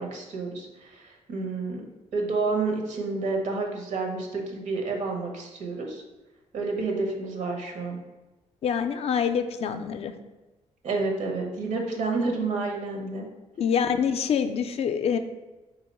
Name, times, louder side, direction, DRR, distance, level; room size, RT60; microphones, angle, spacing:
voice 1, 0.0-1.8 2.1-6.0 6.5-8.0 10.8-13.3 13.6-13.7, right 3 dB, 70° right, 2 dB, 0.9 m, -29 dB
voice 2, 8.6-10.1 13.6-15.2, left 7 dB, 55° left, 8 dB, 0.4 m, -25 dB
3.7 x 2.8 x 4.1 m, 1.1 s
cardioid pair, 85°, 13 cm